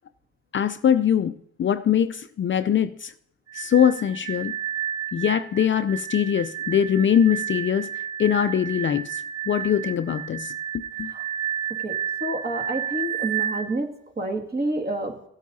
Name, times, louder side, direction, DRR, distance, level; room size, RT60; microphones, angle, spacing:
voice 1, 0.5-3.1 3.5-4.6 5.1-7.9 8.2-11.1, left 9 dB, 40° left, 0.5 m, -22 dB
sound 1, 3.5-13.7, right 9 dB, 55° right, 1.6 m, -31 dB
voice 2, 12.2-13.9 14.2-15.1, right 1 dB, 30° right, 2.1 m, -28 dB
16.5 x 8.3 x 2.7 m
cardioid pair, 90°, 30 cm